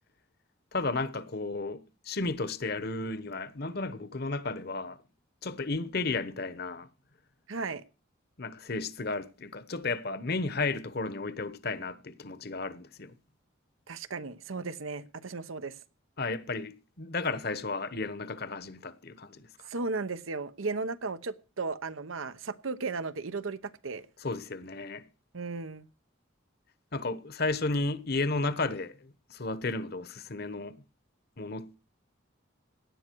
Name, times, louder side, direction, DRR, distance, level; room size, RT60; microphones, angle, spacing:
voice 1, 0.7-5.0 5.4-6.9 8.4-13.1 16.2-19.7 24.2-25.0 26.9-30.8 31.4-31.8, left 3 dB, 50° left, 1.1 m, -33 dB
voice 2, 7.5-7.8 13.9-15.8 19.7-24.1 25.3-25.9, right 4 dB, 90° right, 1.0 m, -35 dB
17.0 x 11.0 x 4.6 m
head